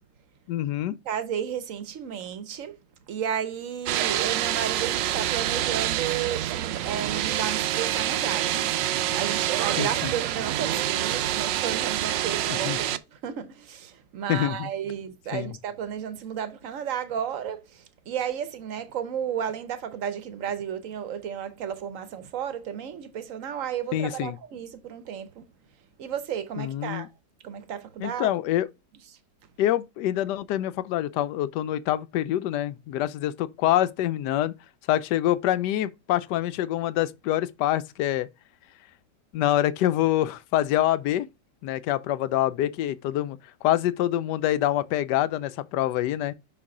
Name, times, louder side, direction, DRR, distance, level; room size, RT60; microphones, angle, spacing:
voice 1, 0.5-1.0 9.8-10.1 12.6-12.8 14.3-14.7 15.3-15.6 23.9-24.4 26.6-27.1 28.0-28.7 29.6-34.5 34.9-38.3 39.3-41.3 41.6-46.3, left 13 dB, 80° left, 1.2 m, -26 dB
voice 2, 1.1-2.8 3.1-25.5 26.0-27.1 27.4-28.3, right 9 dB, 55° right, 1.0 m, -33 dB
sound 1, 3.9-13.0, right 12 dB, 85° right, 1.3 m, -27 dB
5.9 x 4.5 x 3.7 m
omnidirectional pair, 1.9 m